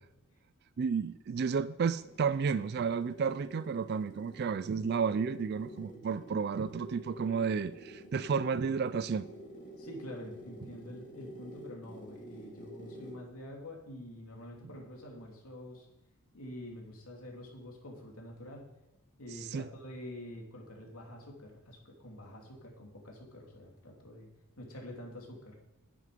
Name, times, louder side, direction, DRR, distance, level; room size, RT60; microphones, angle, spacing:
voice 1, 0.8-9.2 19.3-19.7, right 6 dB, 45° right, 15 dB, 0.3 m, -32 dB
sound 1, 1.8-13.3, equal, 35° left, 2.9 m, -49 dB
voice 2, 9.8-15.9 16.3-18.6 19.2-24.3 24.6-25.6, left 1 dB, 75° left, -1 dB, 3.0 m, -47 dB
10.5 x 10.0 x 5.1 m, 0.94 s
head